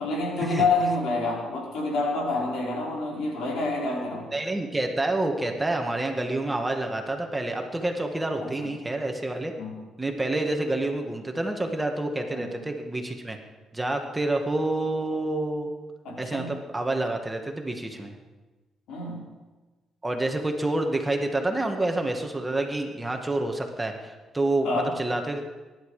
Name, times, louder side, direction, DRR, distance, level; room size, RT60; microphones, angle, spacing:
voice 1, 0.0-4.3 8.4-8.7 9.6-9.8 12.3-12.5 16.1-16.5 18.9-19.3 24.6-24.9, left 3 dB, 80° left, -2 dB, 5.2 m, -28 dB
voice 2, 4.3-9.5 10.0-13.4 13.7-15.7 16.2-18.1 20.0-25.5, right 2 dB, 15° right, 3 dB, 2.0 m, -28 dB
23.5 x 11.0 x 5.1 m, 1.2 s
cardioid pair, 90°, 0 cm